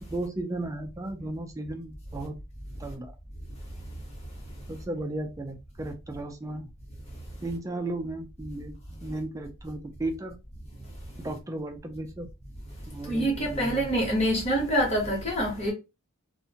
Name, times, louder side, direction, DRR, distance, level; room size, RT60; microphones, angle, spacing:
voice 1, 0.0-2.3 2.8-3.1 4.7-6.7 7.4-10.3 11.2-12.3 12.9-13.9, right 2 dB, 15° right, 0.3 m, -35 dB
voice 2, 13.1-15.7, right 1 dB, 30° left, 0.9 m, -26 dB
2.5 x 2.1 x 2.8 m
head